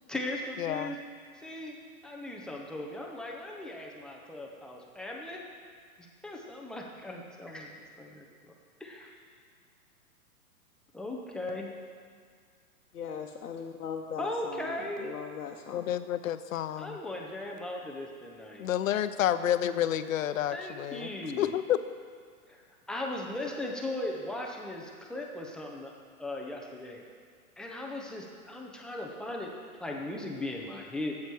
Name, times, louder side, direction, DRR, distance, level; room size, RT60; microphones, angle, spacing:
voice 1, 0.1-1.0 1.3-1.8 2.0-5.5 6.0-8.3 8.8-9.1 10.9-11.7 14.2-15.1 16.8-18.7 20.5-21.6 22.5-25.9 26.2-27.0 27.6-29.5 29.8-31.1, left 1 dB, ahead, -1 dB, 0.5 m, -38 dB
voice 2, 0.6-0.9 15.7-17.0 18.6-21.8, left 11 dB, 60° left, 12 dB, 0.7 m, -30 dB
voice 3, 12.9-15.9, left 7 dB, 85° left, 0 dB, 1.0 m, -39 dB
13.5 x 8.5 x 4.7 m, 2.1 s
hypercardioid pair, 130°, 45 cm